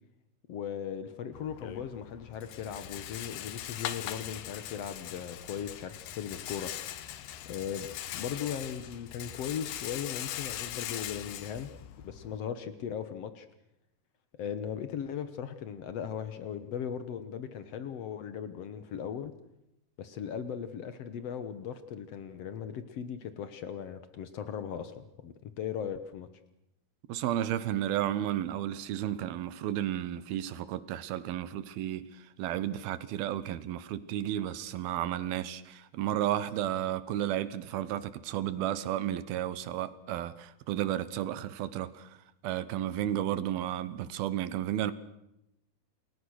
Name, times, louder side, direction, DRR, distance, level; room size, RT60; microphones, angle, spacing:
voice 1, 0.5-6.7 7.4-11.7 12.0-13.5 14.4-19.3 20.0-26.3, left 8 dB, 70° left, 1.5 m, -38 dB
Rattle, 1.3-12.4, left 12 dB, 90° left, 3.3 m, -41 dB
voice 2, 27.1-42.2 42.4-44.9, right 12 dB, 75° right, 2.8 m, -33 dB
29.0 x 20.5 x 6.4 m
omnidirectional pair, 4.6 m